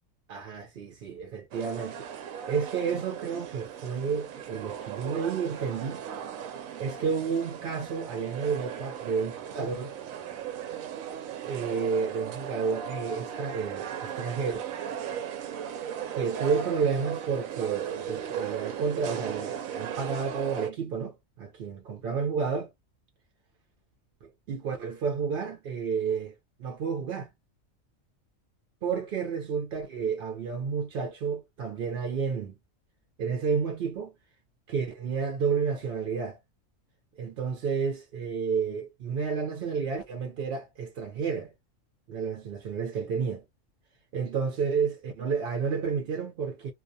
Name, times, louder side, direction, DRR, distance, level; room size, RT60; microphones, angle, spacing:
voice 1, 0.3-2.1 2.5-6.0 6.8-9.9 11.4-14.6 16.2-22.7 24.2-26.3 26.6-27.3 28.8-32.5 33.2-34.1 34.7-36.4 37.2-41.5 42.1-43.4 44.1-46.7, right 5 dB, 60° right, 0.7 m, -31 dB
sound 1, 1.5-20.7, right 9 dB, 85° right, 1.0 m, -37 dB
2.3 x 2.2 x 2.6 m
omnidirectional pair, 1.4 m